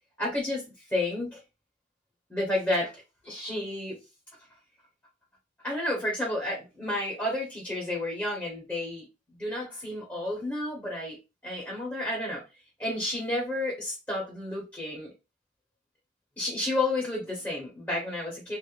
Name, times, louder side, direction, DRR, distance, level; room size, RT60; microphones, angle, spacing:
voice 1, 0.2-0.6 0.9-1.4 2.3-2.9 3.2-4.0 5.6-9.1 9.4-11.2 11.4-12.4 12.8-15.1 16.4-18.6, left 1 dB, 10° left, -3 dB, 0.7 m, -31 dB
2.3 x 2.0 x 2.8 m, 0.27 s
head